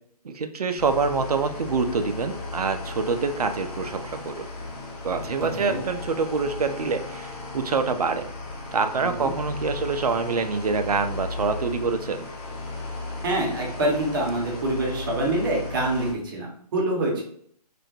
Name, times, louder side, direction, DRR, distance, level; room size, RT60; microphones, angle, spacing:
voice 1, 0.2-4.5 5.0-8.3 8.7-12.3, right 4 dB, 65° right, 8 dB, 0.5 m, -26 dB
sound 1, 0.8-16.1, left 2 dB, 15° left, 0.4 m, -35 dB
voice 2, 5.4-5.8 9.0-9.3 13.2-17.2, right 1 dB, 30° right, -2 dB, 0.8 m, -26 dB
3.0 x 2.1 x 4.1 m, 0.64 s
figure-of-eight pair, 140°, 21 cm